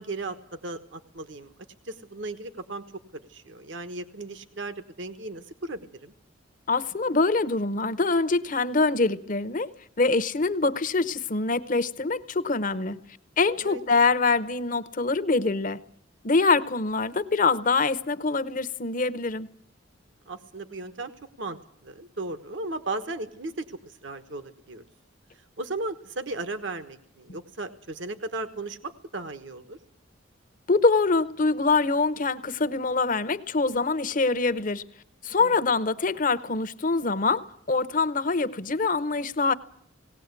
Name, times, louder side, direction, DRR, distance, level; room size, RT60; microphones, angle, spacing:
voice 1, 0.0-1.5 1.8-2.8 3.1-6.1 13.6-13.8 20.3-21.1 21.4-24.8 25.6-29.8 35.4-35.6, right 2 dB, 70° right, 9 dB, 1.3 m, -36 dB
voice 2, 6.7-9.7 10.0-13.0 13.4-15.8 16.2-19.5 30.7-34.8 35.2-39.5, left 3 dB, 45° left, 15 dB, 0.8 m, -24 dB
18.5 x 18.0 x 8.3 m, 0.67 s
head